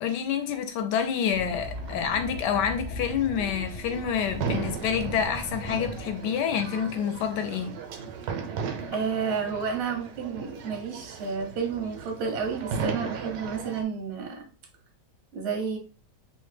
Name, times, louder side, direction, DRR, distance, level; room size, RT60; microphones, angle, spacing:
voice 1, 0.0-7.8, left 8 dB, 80° left, 1.2 m, -28 dB
sound 1, 1.3-6.5, left 1 dB, 55° left, 0.4 m, -39 dB
sound 2, 1.3-13.8, right 5 dB, 90° right, 1.2 m, -37 dB
voice 2, 8.9-14.5 15.3-15.8, right 5 dB, 60° right, 0.7 m, -31 dB
3.0 x 2.1 x 3.2 m
omnidirectional pair, 1.8 m